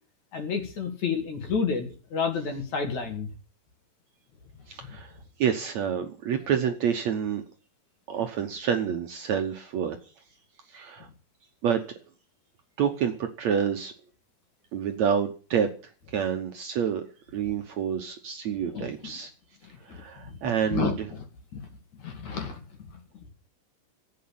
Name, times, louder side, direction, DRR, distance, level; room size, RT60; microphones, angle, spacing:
voice 1, 0.3-3.3 4.8-5.0 18.7-19.1 19.9-21.2 21.5-21.6 22.0-23.0, left 5 dB, 55° left, 5 dB, 3.5 m, -31 dB
voice 2, 4.7-5.1 5.4-7.4 8.1-10.0 10.7-11.1 11.6-11.8 12.8-13.9 14.7-15.7 16.1-17.0 17.3-19.3 19.8-21.1, right 8 dB, 65° right, 5 dB, 2.0 m, -28 dB
14.5 x 8.7 x 8.8 m, 0.39 s
omnidirectional pair, 4.2 m